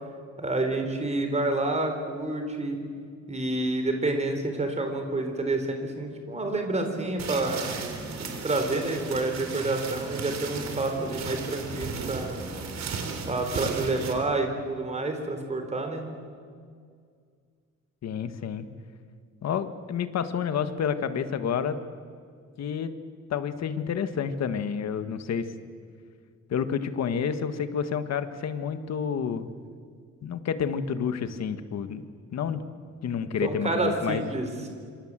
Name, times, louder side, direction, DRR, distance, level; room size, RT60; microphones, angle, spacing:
voice 1, 0.4-2.8 3.3-7.7 8.4-12.4 13.3-16.1 33.4-34.5, right 2 dB, 20° right, 5 dB, 3.8 m, -28 dB
sound 1, 7.2-14.1, right 4 dB, 65° right, 3.6 m, -35 dB
voice 2, 18.0-18.7 19.4-21.8 22.6-22.9 23.3-25.5 26.5-29.5 30.2-32.0 32.3-32.6 33.0-34.3, left 7 dB, 60° left, 10 dB, 1.7 m, -29 dB
26.5 x 26.5 x 7.6 m, 2.1 s
wide cardioid pair, 180°, 30 cm